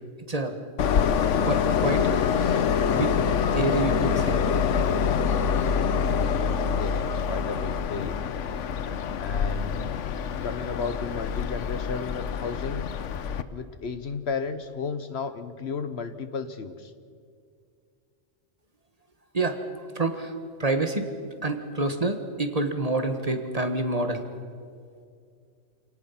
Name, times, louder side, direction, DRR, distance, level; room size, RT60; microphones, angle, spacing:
Train, 0.8-13.4, left 7 dB, 75° left, 1.1 m, -25 dB
voice 1, 1.4-2.6 2.9-3.2 3.5-4.4 19.3-19.6 19.9-20.3 20.6-21.1 21.4-24.2, right 2 dB, 30° right, 7 dB, 1.4 m, -28 dB
voice 2, 6.8-8.2 9.2-9.9 10.4-12.9 13.5-16.9, left 5 dB, 60° left, 11 dB, 1.2 m, -33 dB
27.5 x 18.5 x 5.8 m, 2.3 s
omnidirectional pair, 1.3 m